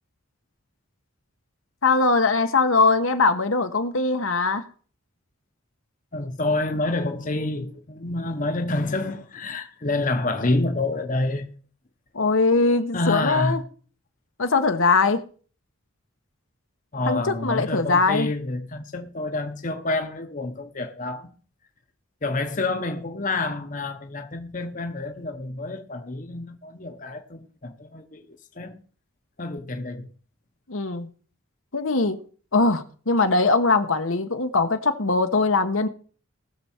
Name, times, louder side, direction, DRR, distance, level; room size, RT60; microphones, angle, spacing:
voice 1, 1.8-4.7 12.1-13.6 14.4-15.2 17.1-18.3 30.7-31.1 31.7-32.2 32.5-35.9, left 3 dB, 70° left, 1.1 m, -21 dB
voice 2, 6.1-11.5 12.9-13.6 16.9-21.3 22.2-28.8 29.4-30.1, left 2 dB, 40° left, 1.0 m, -28 dB
19.0 x 6.9 x 4.4 m
head